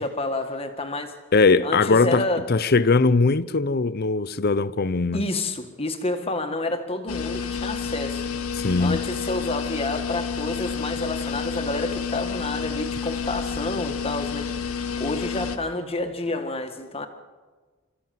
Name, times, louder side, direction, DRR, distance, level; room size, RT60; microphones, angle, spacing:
voice 1, 0.0-1.1 1.6-2.4 5.1-8.2 8.8-14.5 15.0-17.1, left 2 dB, 25° left, 1.7 m, -29 dB
voice 2, 1.3-5.3 8.5-9.1, left 3 dB, 45° left, 0.6 m, -20 dB
sound 1, 7.1-15.6, left 6 dB, 75° left, 1.5 m, -30 dB
27.0 x 14.5 x 7.7 m
head